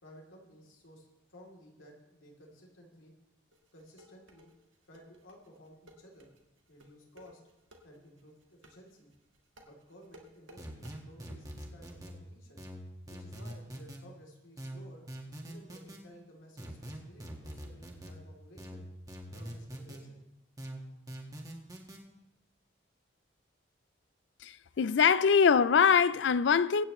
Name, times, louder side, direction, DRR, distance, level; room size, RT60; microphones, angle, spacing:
voice 1, 0.0-3.1 3.7-4.5 4.8-6.3 6.7-7.4 7.8-9.1 9.6-12.7 13.1-15.0 15.4-18.8 19.3-20.2, equal, 90° left, 3.1 m, -55 dB
sound 1, 3.5-11.0, equal, 85° right, 1.7 m, -57 dB
sound 2, 10.6-12.1 12.6-14.0 14.6-16.0 16.6-18.1 18.6-20.0 20.6-22.0, equal, 20° right, 1.5 m, -44 dB
voice 2, 24.4-26.8, left 6 dB, 65° left, 0.4 m, -23 dB
23.0 x 9.0 x 3.1 m
head